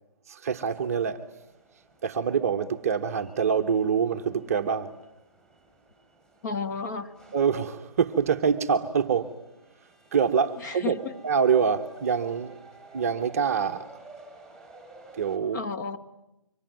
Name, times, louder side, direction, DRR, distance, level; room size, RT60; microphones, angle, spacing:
voice 1, 0.3-1.2 2.0-5.0 7.3-9.4 10.1-12.6 12.9-14.0 15.1-15.6, right 6 dB, 25° right, 0.9 m, -25 dB
sound 1, 0.7-15.4, right 3 dB, 5° left, 3.9 m, -54 dB
voice 2, 6.4-7.1 10.6-11.0 15.5-16.0, left 5 dB, 30° left, 1.7 m, -32 dB
25.5 x 25.0 x 9.2 m
hypercardioid pair, 165°, 19 cm